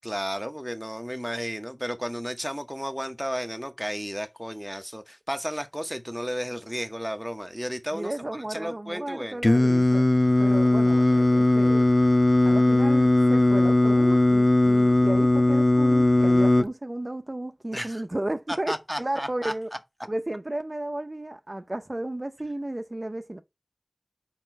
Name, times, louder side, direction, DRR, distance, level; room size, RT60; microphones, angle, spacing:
voice 1, 0.0-9.4 17.7-18.0 18.5-19.5, equal, ahead, 0.8 m, -33 dB
voice 2, 7.9-10.1 10.4-11.9 12.4-19.7 20.0-23.4, right 1 dB, 40° right, 0.6 m, -33 dB
Singing, 9.4-16.7, left 1 dB, 40° left, 0.6 m, -19 dB
4.9 x 4.4 x 4.4 m
wide cardioid pair, 45°, 0 cm